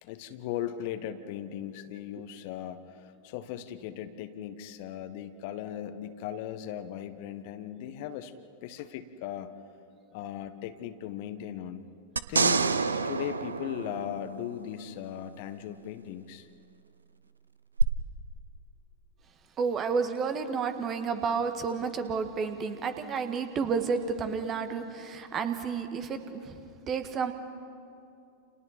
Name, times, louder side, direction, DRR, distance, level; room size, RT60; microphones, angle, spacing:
voice 1, 0.0-8.3 8.6-9.5 10.1-11.8 12.3-12.7 13.0-16.5, left 10 dB, 50° left, 10 dB, 1.2 m, -38 dB
sound 1, 12.2-14.7 17.8-17.9, right 4 dB, 75° right, 0.7 m, -27 dB
voice 2, 19.6-26.6 26.9-27.3, right 5 dB, 30° right, 8 dB, 1.6 m, -31 dB
29.5 x 29.0 x 4.3 m, 2.6 s
figure-of-eight pair, 90°, 0 cm